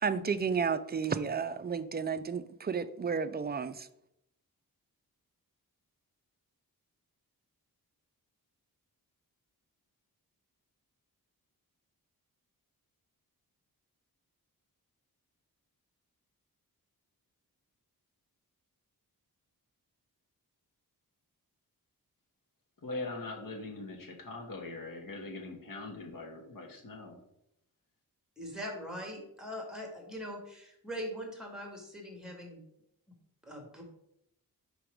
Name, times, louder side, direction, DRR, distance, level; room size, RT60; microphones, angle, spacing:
voice 1, 0.0-3.9, right 6 dB, 30° right, 0.3 m, -32 dB
voice 2, 22.8-27.2, left 2 dB, 60° left, 1.4 m, -41 dB
voice 3, 28.4-32.6 33.4-33.8, equal, ahead, 1.8 m, -41 dB
5.1 x 4.6 x 4.9 m
wide cardioid pair, 115°, 37 cm